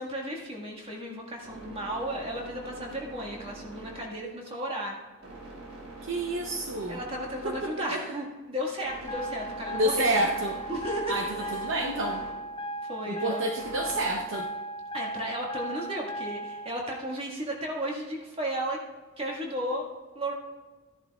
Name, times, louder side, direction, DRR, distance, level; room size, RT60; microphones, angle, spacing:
voice 1, 0.0-5.0 6.9-10.2 10.7-11.5 12.9-13.4 14.9-18.8 19.2-19.9 20.1-20.3, equal, 25° right, -1 dB, 1.7 m, -34 dB
sound 1, 0.8-14.2, right 2 dB, 70° right, 3.0 m, -45 dB
voice 2, 6.0-7.0 7.4-8.0 9.7-10.6 11.1-12.2 13.1-14.5, right 1 dB, 55° right, 2 dB, 0.7 m, -29 dB
sound 2, 9.1-16.7, right 1 dB, 20° left, 0.4 m, -37 dB
14.0 x 10.5 x 2.3 m, 1.3 s
head